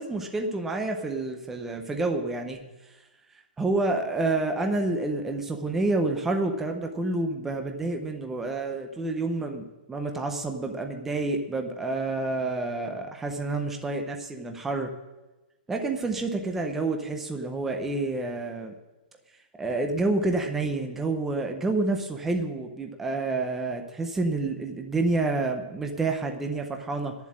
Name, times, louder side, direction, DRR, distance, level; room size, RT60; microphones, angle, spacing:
voice 1, 0.0-2.6 3.6-14.9 15.7-18.7 19.6-27.1, right 2 dB, 5° right, 4 dB, 0.6 m, -28 dB
10.5 x 7.3 x 9.6 m, 1.1 s
hypercardioid pair, 180°, 5 cm